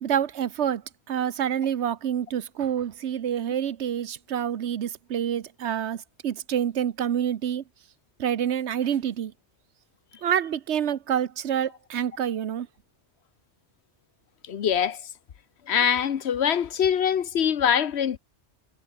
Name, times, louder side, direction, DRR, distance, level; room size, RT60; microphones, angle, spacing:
voice 1, 0.0-0.8 1.1-7.6 8.2-9.3 10.2-12.7, right 9 dB, 80° right, 1.2 m, -27 dB
voice 2, 14.5-15.0 15.7-18.2, left 8 dB, 75° left, 1.2 m, -23 dB
omnidirectional pair, 1.1 m